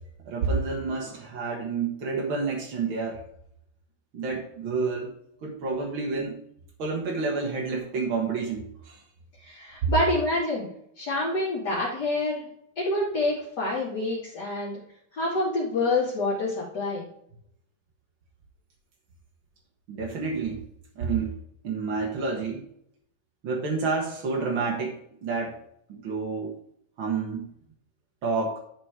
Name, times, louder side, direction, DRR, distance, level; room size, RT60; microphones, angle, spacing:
voice 1, 0.2-3.2 4.1-5.1 5.4-6.4 6.8-9.0 9.8-9.9 19.9-20.6 20.9-21.3 21.6-22.6 23.4-25.6 25.9-26.5 27.0-27.4 28.2-28.6, right 4 dB, 60° right, -1 dB, 1.3 m, -29 dB
voice 2, 9.4-10.7 11.0-12.5 12.8-14.8 15.1-17.1, left 2 dB, 30° left, -7 dB, 2.5 m, -27 dB
10.0 x 5.1 x 4.7 m, 0.71 s
omnidirectional pair, 4.4 m